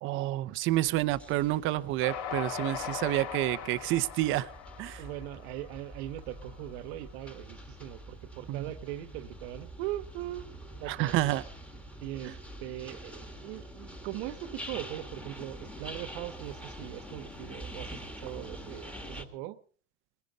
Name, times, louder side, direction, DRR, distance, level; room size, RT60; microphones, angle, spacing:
voice 1, 0.0-4.5 4.8-5.0 8.5-8.7 10.9-11.4, right 16 dB, 30° right, 0.7 m, -29 dB
sound 1, 0.7-19.2, equal, 5° left, 1.6 m, -46 dB
Train, 2.0-6.4, left 8 dB, 75° left, 5.4 m, -39 dB
voice 2, 5.0-10.5 10.8-11.4 12.0-19.6, right 14 dB, 55° right, 1.3 m, -40 dB
21.5 x 16.0 x 4.0 m
supercardioid pair, 160°, 38 cm